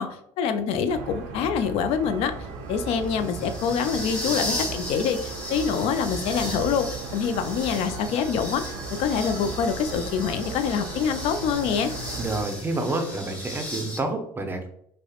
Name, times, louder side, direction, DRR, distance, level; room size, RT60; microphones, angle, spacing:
voice 1, 0.0-2.3 2.7-11.9, left 7 dB, 60° left, 9 dB, 0.4 m, -26 dB
sound 1, 0.9-14.0, left 1 dB, 10° left, 1.2 m, -36 dB
sound 2, 0.9-12.5, right 4 dB, 75° right, 0.4 m, -37 dB
voice 2, 12.2-14.7, right 2 dB, 20° right, 5 dB, 0.5 m, -28 dB
2.7 x 2.1 x 2.4 m, 0.69 s
supercardioid pair, 85°, 11 cm